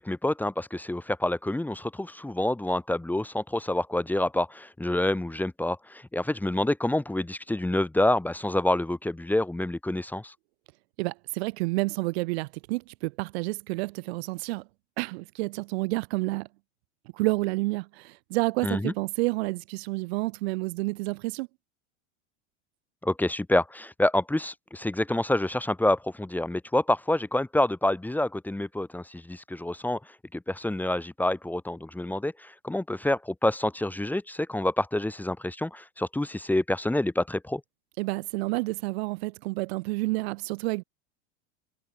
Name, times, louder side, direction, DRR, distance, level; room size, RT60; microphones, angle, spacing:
voice 1, 0.0-10.3 18.6-18.9 23.0-30.0 30.3-37.6, left 1 dB, 5° left, 2.4 m, -27 dB
voice 2, 11.0-14.6 15.0-16.5 17.1-21.5 38.0-40.8, right 24 dB, 70° right, 3.6 m, -29 dB
supercardioid pair, 120°, 33 cm